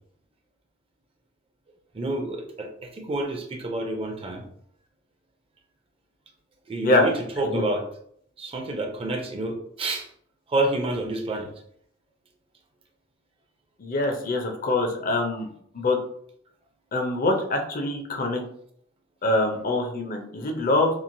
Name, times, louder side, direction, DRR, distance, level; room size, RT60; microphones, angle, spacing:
voice 1, 1.9-4.4 6.7-7.9 8.4-10.1 10.5-11.5, right 2 dB, 30° right, 3 dB, 0.4 m, -28 dB
voice 2, 13.8-15.5 15.7-16.0 16.9-18.4 19.2-20.9, left 2 dB, 45° left, 3 dB, 0.5 m, -24 dB
3.0 x 2.4 x 2.5 m, 0.65 s
head